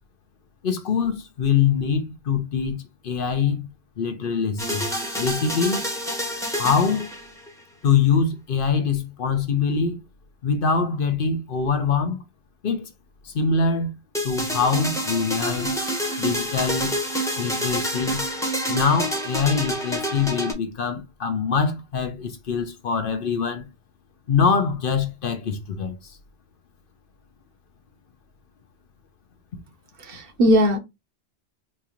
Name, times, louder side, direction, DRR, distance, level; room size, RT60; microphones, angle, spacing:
voice 1, 0.6-3.7 4.0-4.9 5.2-5.9 6.6-7.1 7.8-10.0 10.4-12.2 12.6-12.9 13.2-13.9 14.2-15.7 16.2-16.9 17.4-18.2 18.7-23.6 24.3-26.0, left 5 dB, 60° left, 0.8 m, -23 dB
sound 1, 4.6-7.6 14.1-20.5, equal, 5° left, 0.7 m, -28 dB
voice 2, 30.0-30.8, equal, 60° right, 0.9 m, -19 dB
4.2 x 2.4 x 2.9 m
omnidirectional pair, 1.1 m